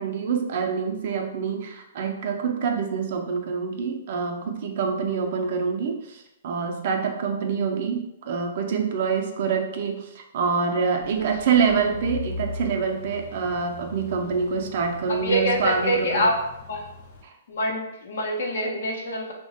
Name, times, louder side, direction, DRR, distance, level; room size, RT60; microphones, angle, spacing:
voice 1, 0.0-16.3 17.2-17.3, right 6 dB, 55° right, 3 dB, 0.4 m, -26 dB
sound 1, 11.0-17.2, left 3 dB, 45° left, 0.4 m, -40 dB
voice 2, 15.1-16.4 16.7-16.8 17.5-19.3, equal, 75° left, 0 dB, 0.7 m, -25 dB
2.8 x 2.1 x 2.8 m, 0.84 s
hypercardioid pair, 145°, 0 cm